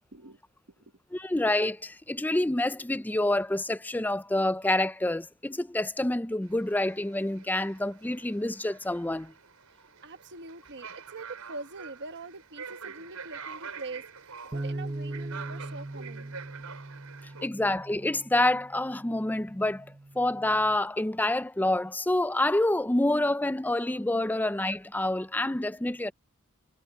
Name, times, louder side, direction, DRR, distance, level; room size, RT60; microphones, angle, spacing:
voice 1, 1.1-9.3 17.4-19.9 20.2-26.1, left 1 dB, 10° left, 0.5 m, -27 dB
sound 1, 6.4-17.5, right 6 dB, 80° right, 4.7 m, -46 dB
voice 2, 10.0-16.4, right 3 dB, 55° right, 1.3 m, -43 dB
Bass guitar, 14.5-20.8, right 2 dB, 20° right, 0.9 m, -40 dB
head